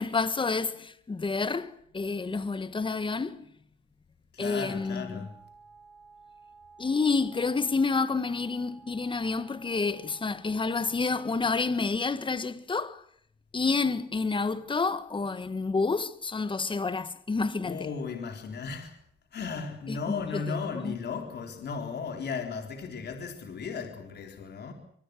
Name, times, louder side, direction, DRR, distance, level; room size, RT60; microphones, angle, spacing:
voice 1, 0.0-3.4 4.4-5.3 6.8-13.0 13.5-17.9 19.9-21.0, left 4 dB, 25° left, 1.6 m, -29 dB
voice 2, 4.3-5.3 17.6-19.0 19.3-24.7, left 5 dB, 55° left, 4.0 m, -36 dB
Wind instrument woodwind instrument, 4.5-11.9, right 4 dB, ahead, 7.3 m, -55 dB
24.5 x 24.0 x 6.3 m
cardioid pair, 90°, 20 cm